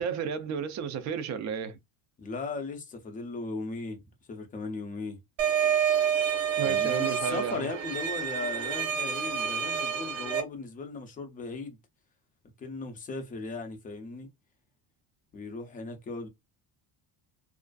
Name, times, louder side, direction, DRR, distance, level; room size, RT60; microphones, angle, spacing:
voice 1, 0.0-1.8 6.6-7.7, right 7 dB, 40° right, 0.4 m, -32 dB
voice 2, 2.2-4.0 4.3-5.2 6.6-11.8 12.6-14.3 15.3-16.3, left 3 dB, 20° left, 0.4 m, -37 dB
sound 1, 5.4-10.4, right 8 dB, 80° right, 0.9 m, -28 dB
2.5 x 2.3 x 2.2 m
cardioid pair, 155°, 44 cm